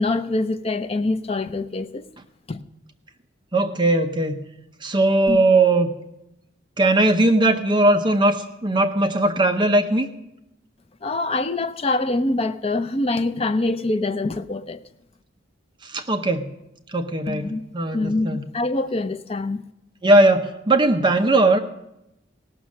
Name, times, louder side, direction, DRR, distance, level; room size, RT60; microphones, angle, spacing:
voice 1, 0.0-2.1 2.5-2.6 5.3-5.4 11.0-14.8 17.3-17.6 17.9-19.6, left 2 dB, 30° left, 0.5 m, -24 dB
voice 2, 3.5-4.3 4.8-5.9 6.8-10.1 15.8-16.5 16.9-18.4 20.0-21.6, right 2 dB, 25° right, 0.7 m, -19 dB
17.5 x 6.2 x 7.5 m
head